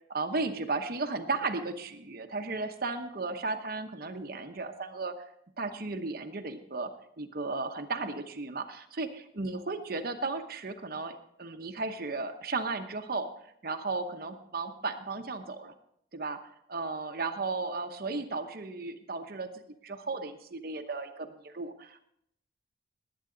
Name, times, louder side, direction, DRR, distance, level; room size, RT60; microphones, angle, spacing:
voice 1, 0.1-5.3 5.6-13.3 13.6-15.7 16.1-16.4 16.7-19.5 19.8-22.0, right 3 dB, 55° right, 6 dB, 0.9 m, -35 dB
20.0 x 8.8 x 3.9 m, 0.73 s
head